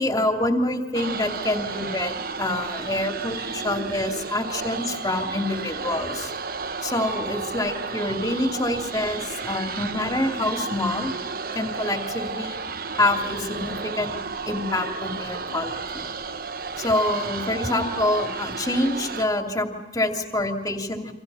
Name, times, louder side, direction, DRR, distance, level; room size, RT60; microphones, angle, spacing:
voice 1, 0.0-6.3 6.8-11.1 11.5-12.6 12.9-14.1 14.5-16.0 16.8-21.1, left 1 dB, 20° left, 4 dB, 2.9 m, -26 dB
sound 1, 0.9-19.3, right 4 dB, 55° right, 1.1 m, -32 dB
29.5 x 26.0 x 5.7 m, 0.97 s
head